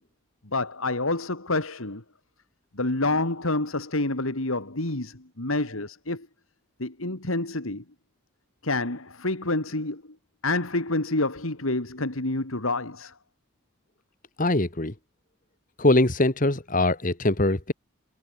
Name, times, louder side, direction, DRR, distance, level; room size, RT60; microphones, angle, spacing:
voice 1, 0.5-2.0 2.7-6.3 6.8-7.8 8.6-10.0 10.4-13.1, left 2 dB, 85° left, 3.1 m, -28 dB
voice 2, 14.4-14.9 15.8-17.7, left 2 dB, 40° left, 1.7 m, -22 dB
head